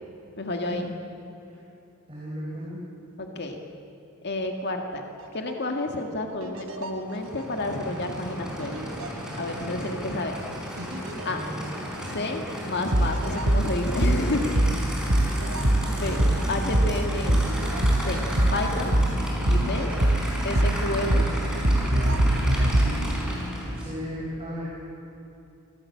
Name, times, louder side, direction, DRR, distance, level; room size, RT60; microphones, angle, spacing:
voice 1, 0.4-0.9 3.2-3.6 4.2-5.0 5.3-8.7 9.4-10.4 11.2-11.4 12.0-14.6 16.0-17.5 17.9-18.2 18.5-19.0 19.5-19.9 20.4-21.3, left 2 dB, 50° left, 3 dB, 1.9 m, -30 dB
voice 2, 2.1-2.8 11.2-11.7 15.9-16.2 23.7-24.7, equal, 25° right, -6 dB, 5.0 m, -35 dB
sound 1, 5.2-5.5 6.4-7.7 8.6-9.6 9.8-9.9 10.8-11.3 11.7-11.8 12.9-14.2 14.6-14.8 15.1-16.4 16.7-16.9 17.3-18.6 18.9-19.1 19.5-20.8 21.1-21.3 21.6-22.9, right 1 dB, 70° right, 3.2 m, -23 dB
Aircraft / Idling, 7.1-24.0, equal, 5° right, 4.8 m, -33 dB
25.0 x 17.5 x 8.5 m, 2.9 s
head